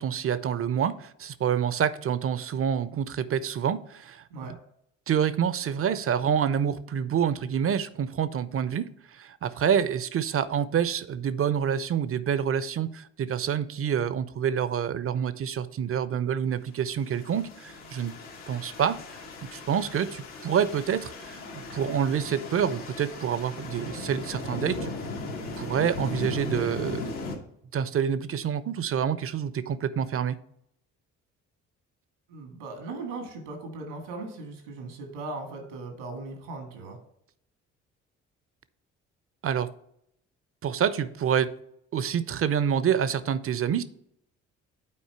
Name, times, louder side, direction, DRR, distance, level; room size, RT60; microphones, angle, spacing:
voice 1, 0.0-4.6 5.1-18.1 18.5-19.0 19.5-24.9 25.6-27.1 27.7-30.4 39.4-39.7 40.6-41.5 41.9-43.8, right 8 dB, 40° right, 16 dB, 0.6 m, -27 dB
sound 1, 17.0-27.4, left 2 dB, 80° left, 1.6 m, -37 dB
voice 2, 32.3-37.0, right 3 dB, 85° right, 3 dB, 1.8 m, -38 dB
8.6 x 4.5 x 4.4 m, 0.73 s
hypercardioid pair, 50°, 35 cm